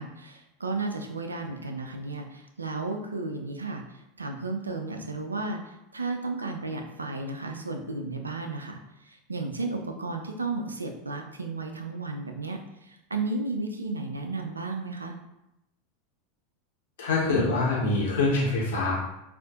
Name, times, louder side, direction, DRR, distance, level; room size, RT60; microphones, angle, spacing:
voice 1, 0.0-15.1, right 3 dB, 85° right, 4 dB, 0.4 m, -33 dB
voice 2, 17.0-19.0, left 3 dB, 65° left, -5 dB, 1.1 m, -24 dB
4.1 x 2.4 x 2.4 m, 0.87 s
figure-of-eight pair, 80°, 0 cm